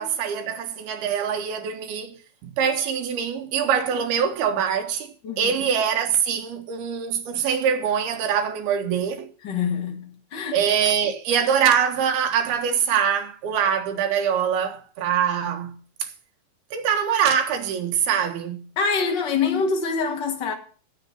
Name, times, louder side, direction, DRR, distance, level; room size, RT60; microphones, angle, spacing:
voice 1, 0.0-2.2 2.4-9.3 10.5-15.8 16.7-18.7, right 8 dB, 85° right, 3.4 m, -23 dB
voice 2, 5.2-5.7 9.4-10.6 18.8-20.5, left 5 dB, 35° left, 2.2 m, -25 dB
10.0 x 8.5 x 7.0 m
omnidirectional pair, 4.3 m